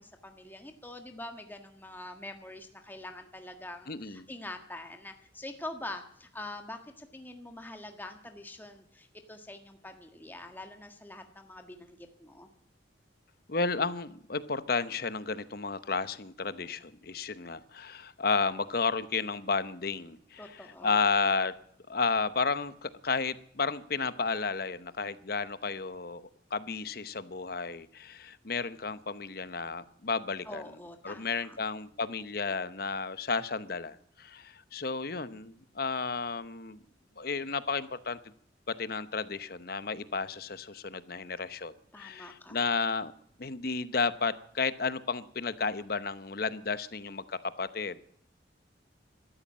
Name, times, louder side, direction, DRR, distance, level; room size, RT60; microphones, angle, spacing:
voice 1, 0.0-12.5 20.4-21.0 30.5-31.6 41.9-42.6, left 2 dB, 10° left, 5 dB, 1.6 m, -45 dB
voice 2, 3.9-4.3 13.5-21.5 21.9-30.6 31.0-36.8 37.2-38.2 38.7-43.1 43.4-48.0, left 4 dB, 55° left, 14 dB, 0.9 m, -32 dB
14.5 x 13.0 x 7.4 m, 0.66 s
head